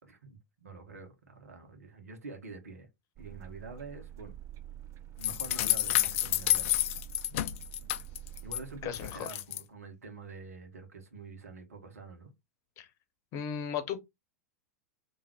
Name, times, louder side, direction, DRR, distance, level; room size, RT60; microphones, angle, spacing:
voice 1, 0.0-2.9 3.2-4.3 5.2-6.8 8.4-12.3, right 3 dB, 75° right, 1.5 m, -46 dB
sound 1, 3.2-8.9, right 12 dB, 35° right, 0.7 m, -47 dB
sound 2, 5.2-8.6 8.9-9.6, left 14 dB, 55° left, 0.4 m, -29 dB
voice 2, 8.8-9.4 12.8-12.9 13.3-14.0, left 8 dB, 40° left, 1.0 m, -36 dB
3.8 x 3.1 x 4.5 m
figure-of-eight pair, 95°, 8 cm